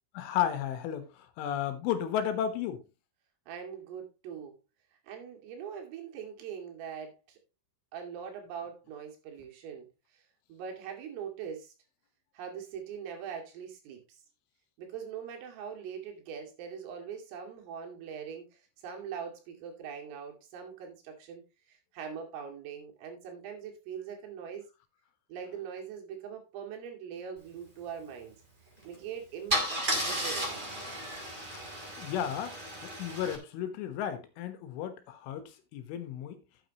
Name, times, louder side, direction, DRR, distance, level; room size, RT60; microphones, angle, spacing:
voice 1, 0.2-2.8 32.0-32.6 32.8-36.4, left 9 dB, 80° left, 3.7 m, -33 dB
voice 2, 3.5-4.6 5.1-7.4 7.9-9.9 10.1-10.2 10.5-11.7 12.4-14.2 14.8-21.4 21.7-24.7 25.3-28.4 28.9-30.7, right 7 dB, 90° right, 5.1 m, -42 dB
Car / Engine starting / Idling, 28.8-29.0 29.5-33.4, equal, 15° right, 2.3 m, -34 dB
12.5 x 9.2 x 3.0 m
omnidirectional pair, 5.7 m